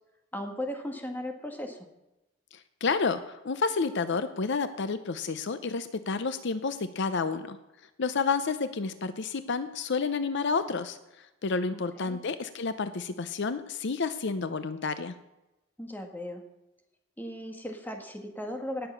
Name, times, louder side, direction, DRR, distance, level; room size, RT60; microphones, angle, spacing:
voice 1, 0.3-1.9 11.7-12.2 15.8-16.4 17.2-18.9, left 1 dB, 10° left, 4 dB, 1.7 m, -37 dB
voice 2, 2.8-7.6 8.0-15.1, left 4 dB, 60° left, 12 dB, 0.7 m, -30 dB
18.0 x 6.9 x 6.9 m, 0.98 s
head